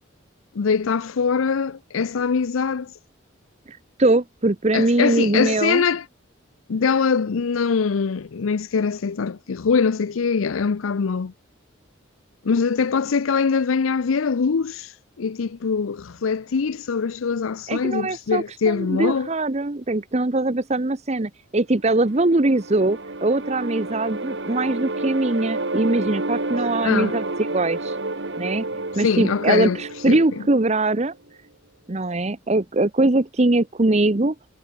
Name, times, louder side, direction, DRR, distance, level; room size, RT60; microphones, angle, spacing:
voice 1, 0.6-2.9 4.7-6.0 6.7-11.3 12.4-14.9 15.2-19.3 26.8-27.2 29.0-29.8 30.1-30.2, left 5 dB, 90° left, 0.5 m, -23 dB
voice 2, 3.7-5.8 17.7-28.0 28.4-28.6 29.0-31.1 31.9-34.3, right 2 dB, 35° right, 0.8 m, -22 dB
sound 1, 22.0-31.1, right 2 dB, 60° right, 1.9 m, -30 dB
head